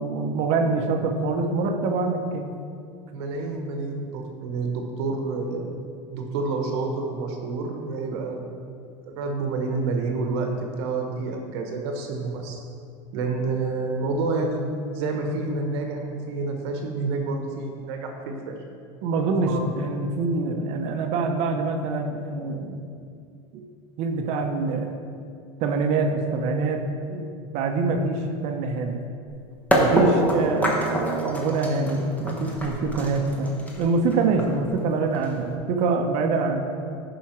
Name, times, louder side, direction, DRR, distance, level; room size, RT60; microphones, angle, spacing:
voice 1, 0.0-2.5 19.0-22.8 24.0-25.0 25.6-26.8 27.1-27.2 27.5-29.0 29.8-36.6, right 3 dB, 45° right, 4 dB, 0.8 m, -25 dB
voice 2, 3.1-5.7 6.1-8.5 9.2-10.5 10.8-12.6 13.1-14.6 14.9-18.6 19.5-19.6, right 3 dB, 65° right, 3 dB, 1.1 m, -28 dB
sound 1, 29.7-35.5, equal, 10° left, 1.2 m, -25 dB
10.5 x 5.0 x 4.4 m, 2.4 s
supercardioid pair, 145°, 15 cm